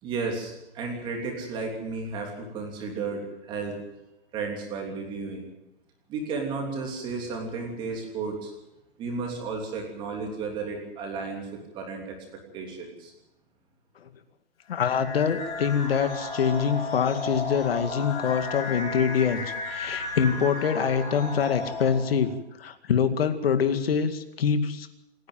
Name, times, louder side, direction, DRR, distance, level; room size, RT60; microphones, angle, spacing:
voice 1, 0.0-3.8 4.3-5.4 6.1-8.5 9.0-13.1, right 4 dB, 15° right, 2 dB, 3.1 m, -33 dB
voice 2, 14.7-22.3 22.6-24.9, left 7 dB, 60° left, 9 dB, 2.3 m, -25 dB
sound 1, 14.7-22.3, left 3 dB, 35° left, 7.2 m, -34 dB
27.5 x 10.5 x 9.1 m, 0.92 s
hypercardioid pair, 175°, 33 cm